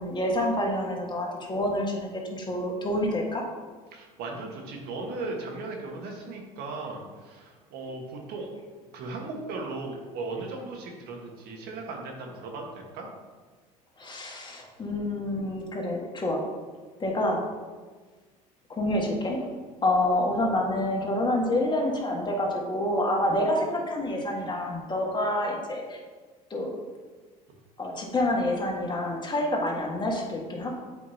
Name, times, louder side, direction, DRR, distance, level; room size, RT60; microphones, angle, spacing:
voice 1, 0.0-3.4 14.0-16.4 17.0-17.4 18.7-19.4 19.8-26.0 26.5-26.8 27.8-30.7, left 1 dB, 25° left, -1 dB, 1.6 m, -27 dB
voice 2, 3.9-8.5 8.9-13.1, right 3 dB, 60° right, 1 dB, 1.4 m, -37 dB
8.2 x 5.1 x 2.8 m, 1.4 s
hypercardioid pair, 70°, 18 cm